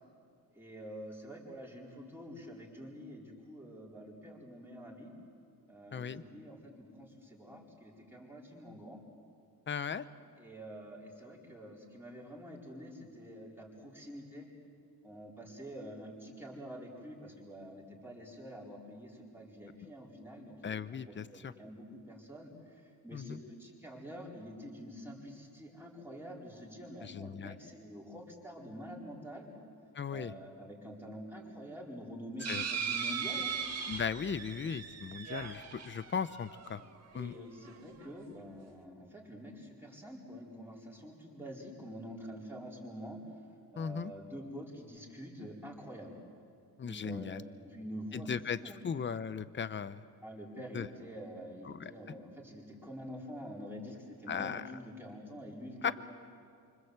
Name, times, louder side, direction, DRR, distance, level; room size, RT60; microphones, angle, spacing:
voice 1, 0.5-5.1 5.7-9.0 10.4-14.5 15.0-29.5 30.1-33.5 37.1-43.2 43.7-46.1 46.8-48.8 50.2-55.9, equal, 5° right, -2 dB, 4.6 m, -47 dB
voice 2, 5.9-6.2 9.7-10.0 20.6-21.5 23.1-23.4 27.0-27.5 29.9-30.3 32.5-32.6 33.9-36.8 37.1-37.3 43.8-44.1 46.8-47.4 48.1-48.6 48.8-50.0 50.7-50.9 51.6-51.9 54.3-54.6 55.8-55.9, left 6 dB, 25° left, 14 dB, 0.8 m, -37 dB
sound 1, 32.4-37.0 37.6-37.7 38.0-38.1, right 6 dB, 40° right, 2.0 m, -38 dB
28.5 x 25.5 x 8.1 m, 2.3 s
cardioid pair, 160°, 41 cm